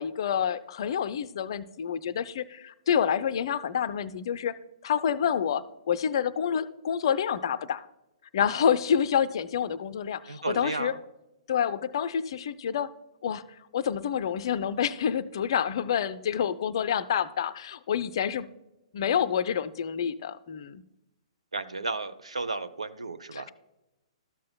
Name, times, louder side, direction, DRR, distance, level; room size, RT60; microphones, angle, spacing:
voice 1, 0.0-4.6 4.8-7.9 8.3-10.9 11.5-12.9 13.2-13.4 13.7-18.5 18.9-20.8 23.3-23.5, left 8 dB, 45° left, 14 dB, 0.4 m, -28 dB
voice 2, 10.3-11.0 21.5-23.5, right 3 dB, 75° right, 10 dB, 0.6 m, -33 dB
13.0 x 7.4 x 2.2 m, 0.95 s
figure-of-eight pair, 120°, 3 cm